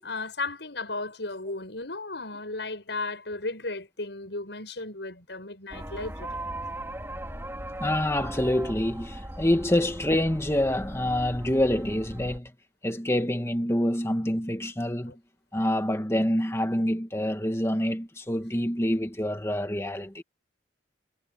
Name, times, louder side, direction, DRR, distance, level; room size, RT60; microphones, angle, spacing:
voice 1, 0.0-6.3 15.1-15.2, left 3 dB, 80° left, 7.0 m, -35 dB
sound 1, 5.7-12.4, right 1 dB, 15° right, 4.7 m, -38 dB
voice 2, 7.8-12.5 12.8-15.1 15.5-20.2, left 1 dB, 15° left, 2.0 m, -26 dB
head